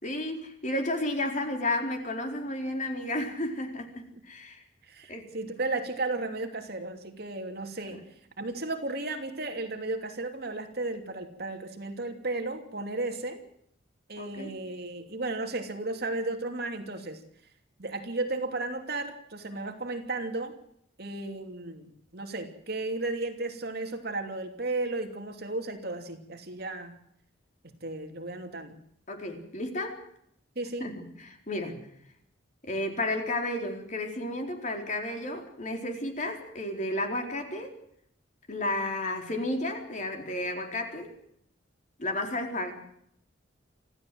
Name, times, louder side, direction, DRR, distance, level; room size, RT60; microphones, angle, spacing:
voice 1, 0.0-4.6 5.1-5.3 14.2-14.5 29.1-30.0 30.8-31.8 32.6-37.7 38.5-41.1 42.0-42.7, left 1 dB, 40° left, 4 dB, 4.3 m, -32 dB
voice 2, 4.9-8.0 8.4-13.4 14.1-17.2 17.8-20.5 21.0-26.9 27.8-28.8 30.5-30.9, right 2 dB, 55° right, 5 dB, 2.9 m, -34 dB
26.5 x 15.5 x 7.8 m, 0.71 s
head